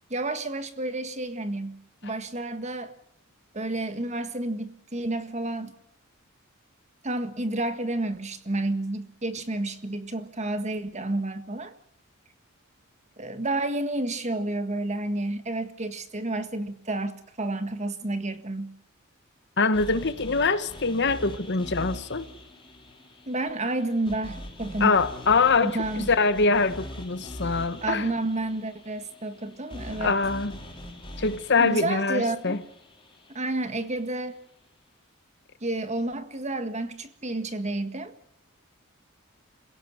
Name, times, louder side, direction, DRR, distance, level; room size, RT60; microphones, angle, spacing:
voice 1, 0.1-2.9 3.5-5.7 7.0-11.7 13.2-18.8 23.3-25.0 25.6-26.1 27.8-30.2 31.6-32.6 33.3-34.4 35.6-38.1, right 2 dB, 30° right, 1.8 m, -30 dB
voice 2, 19.6-22.3 24.8-28.1 30.0-30.6 31.2-32.6, left 4 dB, 55° left, 1.4 m, -24 dB
sound 1, 19.7-33.9, left 1 dB, 25° left, 5.8 m, -43 dB
28.0 x 16.5 x 8.0 m
head